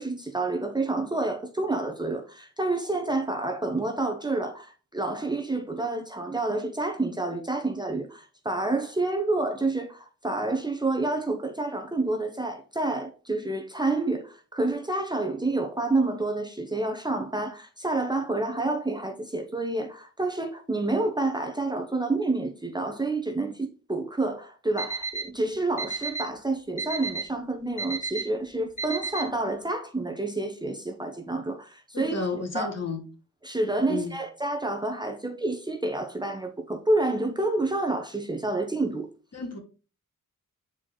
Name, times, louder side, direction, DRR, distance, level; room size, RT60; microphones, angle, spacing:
voice 1, 0.0-32.1 32.5-32.8 33.4-39.1, right 2 dB, 15° right, 1.0 m, -29 dB
Alarm, 24.8-25.2 25.8-26.2 26.8-27.2 27.8-28.2 28.8-29.2, right 4 dB, 20° left, 2.3 m, -30 dB
voice 2, 31.9-33.0 33.9-34.1 39.3-39.6, left 4 dB, 50° left, 2.7 m, -31 dB
8.3 x 4.6 x 3.9 m
wide cardioid pair, 120°, 32 cm